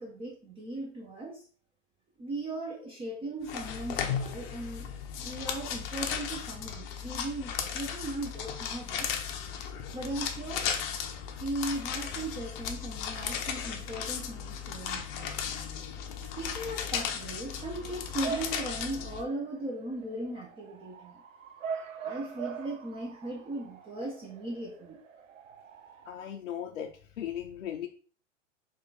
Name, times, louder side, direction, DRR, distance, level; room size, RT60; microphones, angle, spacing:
voice 1, 0.0-1.4 2.2-4.9 5.2-9.1 9.9-10.6 11.4-15.3 16.2-21.2 22.0-25.0, right 1 dB, 15° right, -2 dB, 0.6 m, -38 dB
sound 1, 3.5-19.2, left 7 dB, 40° left, 0.6 m, -36 dB
Bark / Motor vehicle (road) / Siren, 17.5-26.3, right 6 dB, 80° right, 0.7 m, -43 dB
voice 2, 26.1-27.9, left 10 dB, 80° left, 2 dB, 0.6 m, -37 dB
3.5 x 2.5 x 4.0 m, 0.43 s
hypercardioid pair, 110°, 38 cm